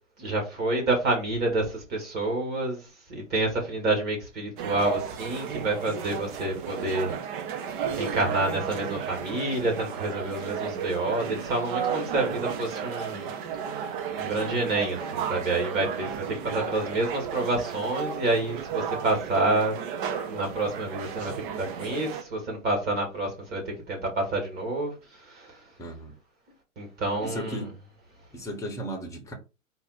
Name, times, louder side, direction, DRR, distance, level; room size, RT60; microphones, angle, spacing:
voice 1, 0.2-2.8 3.1-7.1 7.9-13.3 14.2-19.7 20.3-25.6 26.8-27.7, right 2 dB, 25° right, 1.9 m, -28 dB
sound 1, 4.6-22.2, right 7 dB, 40° right, 0.8 m, -33 dB
voice 2, 25.8-26.1 27.2-27.7 28.3-29.3, equal, 10° left, 1.0 m, -35 dB
4.1 x 2.7 x 4.1 m
hypercardioid pair, 120°, 39 cm